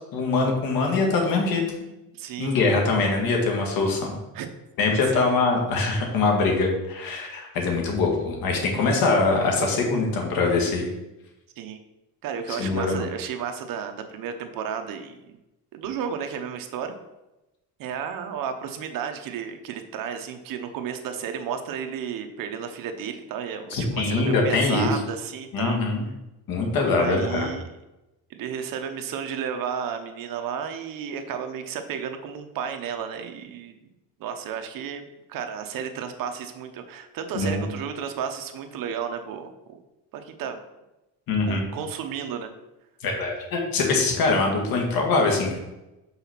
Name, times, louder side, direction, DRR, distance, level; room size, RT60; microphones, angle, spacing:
voice 1, 0.1-1.6 2.4-4.1 4.8-10.9 12.5-13.1 23.7-24.9 25.5-26.0 26.5-27.5 37.3-37.6 41.3-41.6 43.0-45.6, left 3 dB, 65° left, 1 dB, 1.8 m, -23 dB
voice 2, 2.1-2.6 4.3-4.5 4.8-5.2 11.6-11.8 12.2-15.4 15.7-16.9 17.8-25.8 27.0-27.6 28.3-33.7 34.2-35.0 35.3-39.8 40.1-40.6 41.5-42.5, right 7 dB, 60° right, 6 dB, 0.9 m, -33 dB
5.6 x 4.0 x 5.8 m, 0.97 s
cardioid pair, 145°, 37 cm